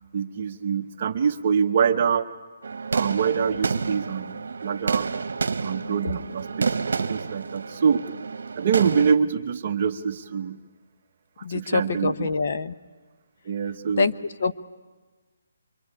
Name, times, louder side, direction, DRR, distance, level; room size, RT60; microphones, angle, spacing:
voice 1, 0.1-2.3 2.9-5.1 5.6-8.0 8.6-10.6 11.5-12.3 13.4-14.1, right 6 dB, 35° right, 6 dB, 1.1 m, -25 dB
sound 1, 2.6-9.1, right 4 dB, 70° right, 1.2 m, -29 dB
voice 2, 11.4-12.7 14.0-14.5, left 4 dB, 45° left, 11 dB, 0.9 m, -25 dB
24.0 x 24.0 x 9.8 m, 1.3 s
hypercardioid pair, 175°, 0 cm